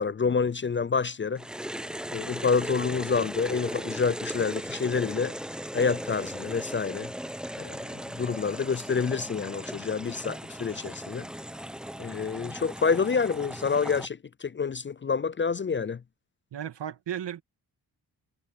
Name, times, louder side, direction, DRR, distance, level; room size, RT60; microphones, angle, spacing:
voice 1, 0.0-1.4 2.1-5.3 5.7-7.1 7.6-11.3 12.0-16.0, left 5 dB, 30° left, 0.4 m, -28 dB
sound 1, 1.4-14.1, equal, ahead, 0.8 m, -37 dB
voice 2, 16.5-17.4, right 10 dB, 80° right, 2.3 m, -34 dB
cardioid pair, 65°, 41 cm